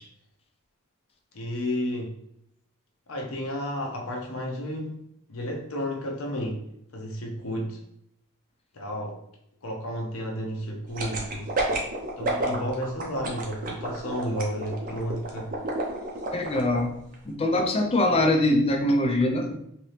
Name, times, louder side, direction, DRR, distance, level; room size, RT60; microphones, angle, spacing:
voice 1, 1.3-2.2 3.1-5.0 5.3-6.6 6.9-7.8 8.7-9.2 9.6-11.5 12.2-15.5, equal, 65° left, 1 dB, 0.7 m, -32 dB
sound 1, 10.9-16.8 17.1-17.2, right 2 dB, 40° right, 0.6 m, -29 dB
voice 2, 16.3-16.9 17.3-19.5, left 1 dB, 25° left, 4 dB, 0.4 m, -23 dB
2.9 x 2.8 x 3.2 m, 0.74 s
head